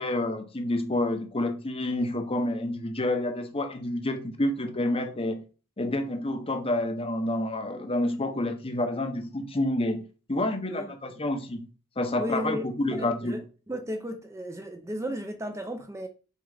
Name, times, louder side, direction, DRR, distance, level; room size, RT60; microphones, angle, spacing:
voice 1, 0.0-5.4 5.8-11.7 12.0-13.4, left 1 dB, 25° left, 0.8 m, -29 dB
voice 2, 12.2-12.6 12.9-13.4 13.7-16.1, equal, 15° right, 0.6 m, -34 dB
6.3 x 4.6 x 3.9 m
head